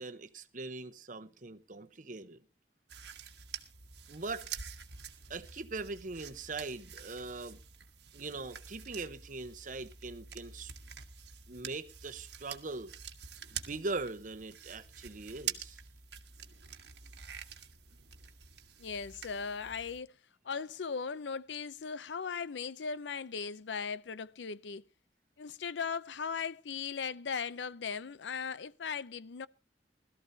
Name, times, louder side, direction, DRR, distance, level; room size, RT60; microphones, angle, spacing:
voice 1, 0.0-2.4 4.1-4.5 5.3-7.6 8.1-10.7 11.5-12.9 13.6-15.8, right 3 dB, 45° right, 1.0 m, -41 dB
sound 1, 2.9-20.0, right 8 dB, 70° right, 1.3 m, -47 dB
voice 2, 18.8-20.1 20.4-24.8 25.4-29.5, left 6 dB, 90° left, 0.6 m, -38 dB
20.5 x 13.5 x 2.8 m
head